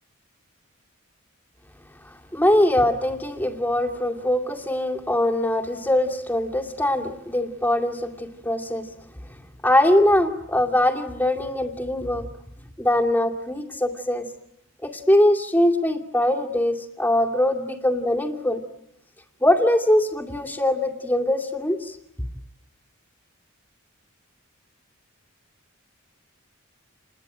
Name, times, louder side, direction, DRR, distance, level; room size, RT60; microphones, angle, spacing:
voice 1, 2.0-8.9 9.6-12.3 12.8-14.3 14.8-18.6 19.4-22.0, left 1 dB, 10° left, 3 dB, 2.5 m, -22 dB
29.5 x 21.0 x 9.2 m, 0.82 s
head